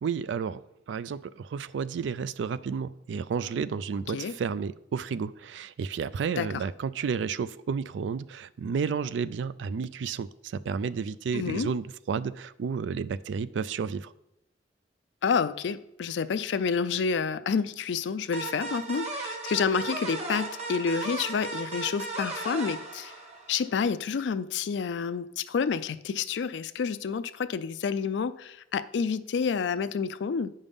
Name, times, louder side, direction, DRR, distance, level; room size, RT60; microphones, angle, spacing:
voice 1, 0.0-0.6 0.9-14.1, right 6 dB, 80° right, 0.3 m, -31 dB
voice 2, 11.3-11.7 15.2-23.1 23.5-30.5, left 6 dB, 75° left, 0.4 m, -29 dB
sound 1, 18.3-23.7, right 3 dB, 40° right, 1.2 m, -36 dB
9.8 x 5.4 x 3.6 m
head